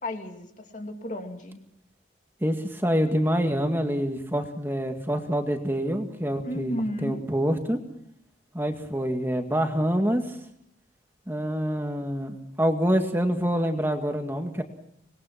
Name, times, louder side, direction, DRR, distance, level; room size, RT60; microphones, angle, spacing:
voice 1, 0.0-1.6 6.4-7.2, equal, 45° left, 5 dB, 3.1 m, -33 dB
voice 2, 2.4-7.8 8.5-10.4 11.3-14.6, equal, 10° right, 5 dB, 2.1 m, -26 dB
26.5 x 21.0 x 6.0 m, 0.72 s
head